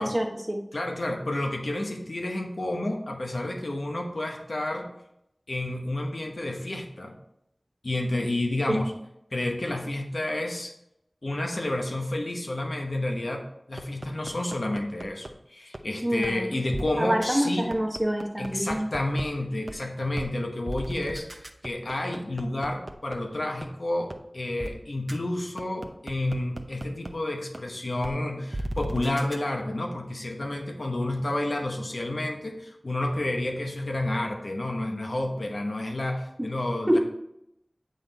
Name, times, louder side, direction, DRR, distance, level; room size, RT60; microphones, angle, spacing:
voice 1, 0.0-0.6 8.7-8.8 16.0-16.5 17.0-18.9 36.9-37.0, equal, 25° right, 1 dB, 1.2 m, -26 dB
voice 2, 0.7-4.9 5.5-7.2 7.8-8.9 9.3-10.7 11.2-17.7 18.4-37.0, left 1 dB, 80° left, 2 dB, 0.9 m, -30 dB
sound 1, 13.8-15.3 15.7-15.8 16.2-16.3 16.7-16.9 17.2-17.3 17.7-19.2 19.7-19.8 20.2-20.3 20.7-23.2 23.6-23.7 24.1-24.2 24.6-24.7 25.1-25.2 25.6-27.1 27.5-27.6 28.0-28.1 28.5-29.4, right 1 dB, 55° right, 0.6 m, -35 dB
8.4 x 4.0 x 4.0 m, 0.81 s
wide cardioid pair, 45°, 0 cm